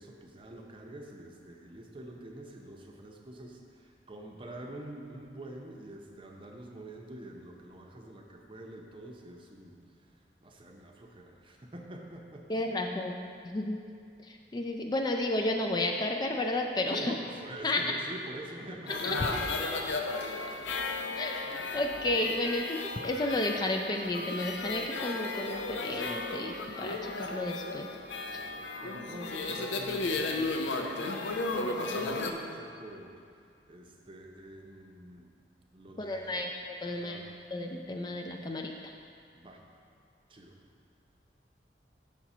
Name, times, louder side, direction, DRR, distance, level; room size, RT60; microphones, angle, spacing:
voice 1, 0.0-9.8 10.4-12.4 16.9-19.8 20.3-20.5 28.3-33.1 33.7-35.3 35.7-36.5 36.8-37.2 39.3-39.6 40.3-40.6, right 1 dB, 30° right, 1 dB, 0.7 m, -46 dB
voice 2, 12.5-13.2 13.4-13.8 14.3-17.1 17.6-17.8 19.0-19.4 21.2-27.9 28.3-28.4 36.0-36.5 36.8-37.2 37.5-38.9, left 2 dB, 25° left, 2 dB, 0.3 m, -32 dB
sound 1, 18.9-32.3, left 3 dB, 90° left, 0.5 m, -34 dB
5.9 x 4.2 x 5.9 m, 2.4 s
head